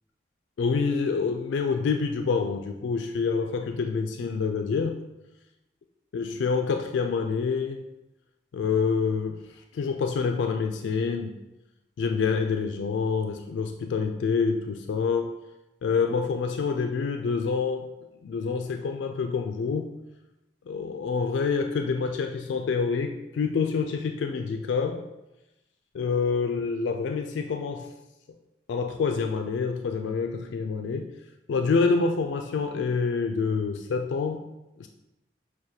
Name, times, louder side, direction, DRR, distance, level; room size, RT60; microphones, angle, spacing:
voice 1, 0.6-5.0 6.1-7.8 8.5-9.4 9.7-11.4 12.0-15.3 15.8-17.9 18.2-19.9 20.7-25.1 25.9-27.9 28.7-31.1 31.5-34.4 34.8-34.9, left 5 dB, 85° left, 5 dB, 0.3 m, -27 dB
6.2 x 2.1 x 2.7 m, 0.94 s
head